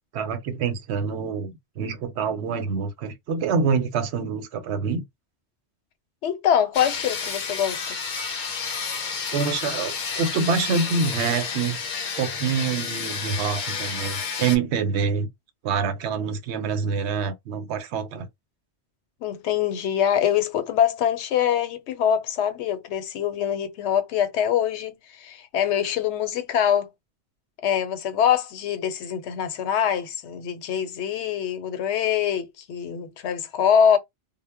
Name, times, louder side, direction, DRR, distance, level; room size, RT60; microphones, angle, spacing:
voice 1, 0.1-5.0 9.3-11.8 12.2-15.3 15.6-18.3, right 5 dB, 85° right, 0.9 m, -26 dB
voice 2, 6.2-8.0 19.2-26.9 27.6-34.0, left 9 dB, 85° left, 0.9 m, -24 dB
sound 1, 6.7-14.6, left 5 dB, 55° left, 0.6 m, -31 dB
2.0 x 2.0 x 3.4 m
omnidirectional pair, 1.1 m